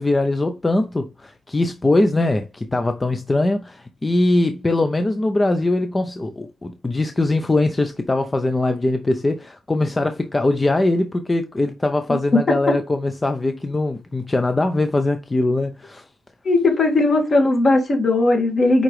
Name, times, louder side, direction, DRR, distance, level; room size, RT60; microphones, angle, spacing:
voice 1, 0.0-16.0, left 2 dB, 20° left, 0.6 m, -21 dB
voice 2, 16.4-18.8, left 2 dB, 45° left, 2.1 m, -17 dB
9.3 x 3.8 x 3.2 m
cardioid pair, 130°, 0 cm